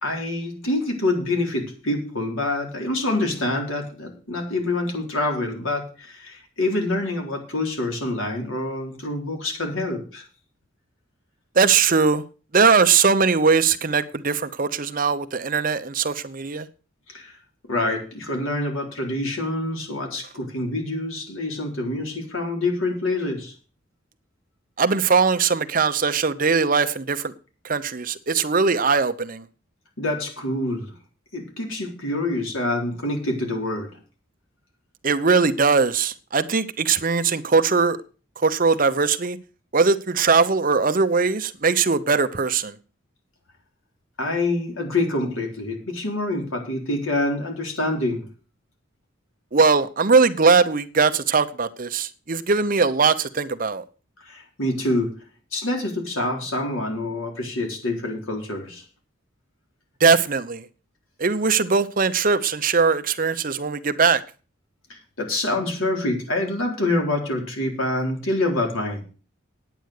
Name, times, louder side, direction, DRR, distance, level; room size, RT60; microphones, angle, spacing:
voice 1, 0.0-10.2 17.1-17.4 17.7-23.5 30.0-30.9 31.3-33.9 44.2-48.2 54.2-55.1 55.5-58.8 64.9-69.0, left 2 dB, 85° left, 4.0 m, -26 dB
voice 2, 11.5-12.2 12.5-16.7 24.8-27.3 27.6-29.4 35.0-38.0 38.4-39.4 39.7-42.8 49.5-53.8 60.0-60.6 61.2-64.2, right 5 dB, 40° right, 0.8 m, -20 dB
9.4 x 9.2 x 6.6 m
head